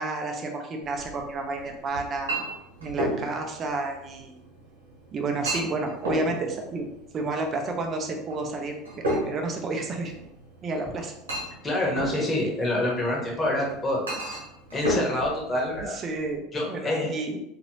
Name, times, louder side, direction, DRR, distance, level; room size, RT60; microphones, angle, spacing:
voice 1, 0.0-2.3 2.8-4.4 5.1-6.9 7.1-10.1 10.6-11.1 12.1-12.5 15.9-17.3, right 3 dB, 35° right, 3 dB, 0.7 m, -31 dB
Chink clink, 0.8-16.3, right 1 dB, 80° right, 1.1 m, -35 dB
voice 2, 11.6-14.0 14.7-15.9 16.5-17.1, left 1 dB, 25° left, -2 dB, 1.4 m, -26 dB
3.9 x 2.9 x 3.0 m, 0.83 s
hypercardioid pair, 75°, 0 cm